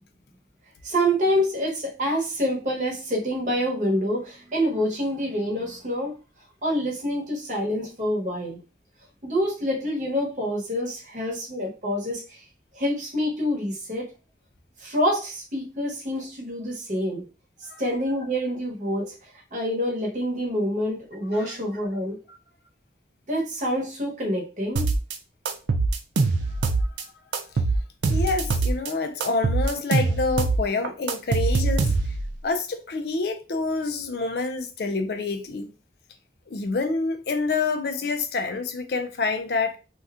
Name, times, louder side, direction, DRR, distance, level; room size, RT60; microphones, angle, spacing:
voice 1, 0.8-6.1 6.6-8.6 9.2-12.4 12.7-14.1 14.8-17.2 17.8-19.1 19.5-22.2 23.3-24.9, equal, 45° right, 1.1 m, -26 dB
sound 1, 24.8-25.2 25.5-27.0 27.3-28.9 29.2-32.3, right 3 dB, 85° right, 0.5 m, -23 dB
voice 2, 28.1-31.9 32.4-35.7 36.5-39.8, left 3 dB, 60° left, 0.4 m, -27 dB
2.7 x 2.3 x 3.5 m
head